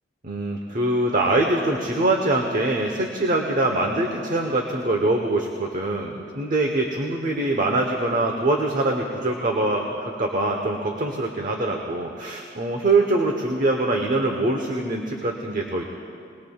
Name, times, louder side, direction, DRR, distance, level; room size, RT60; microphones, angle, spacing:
voice 1, 0.2-15.8, right 2 dB, 45° right, 2 dB, 1.0 m, -23 dB
21.0 x 20.5 x 2.4 m, 2.4 s
head